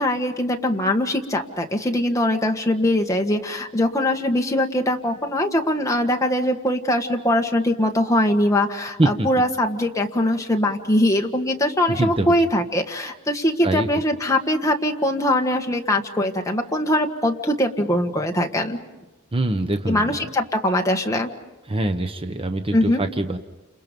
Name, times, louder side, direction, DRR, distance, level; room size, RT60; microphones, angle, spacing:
voice 1, 0.0-18.8 19.9-21.3 22.7-23.0, left 1 dB, 15° left, 2 dB, 1.6 m, -22 dB
voice 2, 11.9-12.3 13.6-14.0 19.3-20.3 21.7-23.4, right 2 dB, 25° right, 6 dB, 1.0 m, -24 dB
29.5 x 28.0 x 5.3 m, 1.1 s
head